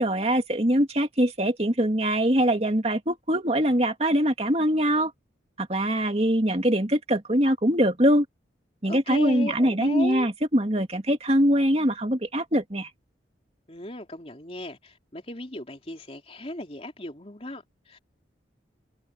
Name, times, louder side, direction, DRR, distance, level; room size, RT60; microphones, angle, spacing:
voice 1, 0.0-5.1 5.6-8.3 8.8-12.9, equal, 30° right, 2.5 m, -23 dB
voice 2, 8.9-10.3 13.7-18.0, left 1 dB, 30° left, 3.5 m, -36 dB
head